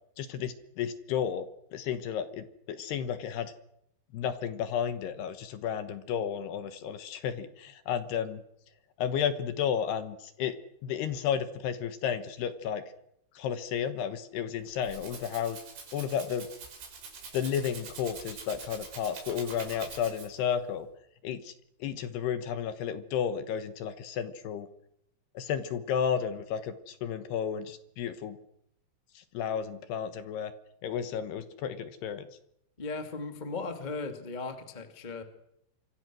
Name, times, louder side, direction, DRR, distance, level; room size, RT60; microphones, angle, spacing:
voice 1, 0.2-1.5 1.7-3.5 4.1-8.4 9.0-10.5 10.8-12.8 13.4-15.6 15.9-16.5 17.3-20.9 21.2-21.5 21.8-24.7 25.3-28.4 29.2-30.5 30.8-32.3, left 8 dB, 70° left, 11 dB, 2.8 m, -32 dB
Rattle (instrument), 14.6-20.5, right 5 dB, 65° right, 7.5 m, -45 dB
voice 2, 32.8-35.2, left 3 dB, 45° left, 7 dB, 0.5 m, -37 dB
27.0 x 24.5 x 6.3 m, 0.77 s
omnidirectional pair, 5.7 m